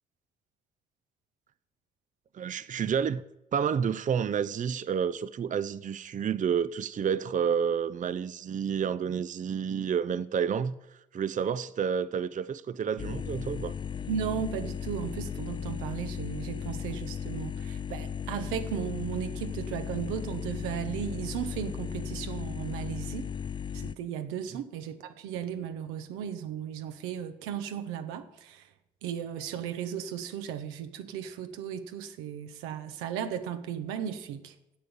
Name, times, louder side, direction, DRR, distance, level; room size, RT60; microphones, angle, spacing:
voice 1, 2.3-3.2 3.5-10.8 11.1-13.7, right 7 dB, 40° right, 0.5 m, -29 dB
sound 1, 13.0-23.9, left 7 dB, 25° left, 0.3 m, -36 dB
voice 2, 14.1-23.3 23.7-28.7 29.0-34.8, right 8 dB, 85° right, 0.9 m, -36 dB
8.5 x 7.7 x 7.0 m
hypercardioid pair, 55°, 21 cm